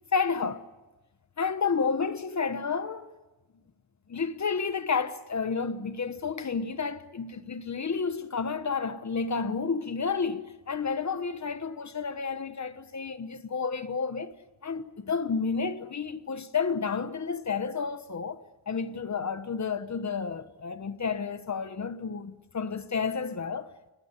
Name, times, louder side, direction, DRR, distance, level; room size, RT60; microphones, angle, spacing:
voice 1, 0.1-0.6 1.4-3.1 4.1-14.3 14.6-23.7, left 5 dB, 40° left, 1.2 m, -31 dB
29.0 x 18.5 x 9.9 m
wide cardioid pair, 155°, 45 cm